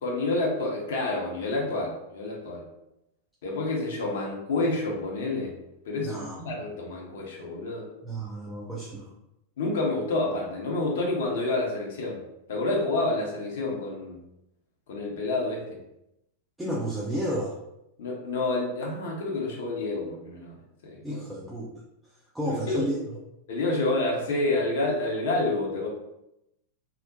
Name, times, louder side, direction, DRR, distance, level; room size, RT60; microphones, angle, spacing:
voice 1, 0.0-2.6 3.4-5.6 5.8-7.9 9.6-12.2 12.5-14.2 14.9-15.8 18.0-20.6 20.8-21.2 22.4-22.9 23.5-25.9, left 2 dB, 60° left, -2 dB, 0.6 m, -28 dB
voice 2, 6.0-6.4 8.0-9.1 16.6-17.6 21.0-21.7 22.3-23.0, right 1 dB, 5° right, -5 dB, 0.4 m, -31 dB
2.8 x 2.0 x 2.6 m, 0.85 s
figure-of-eight pair, 90°, 0 cm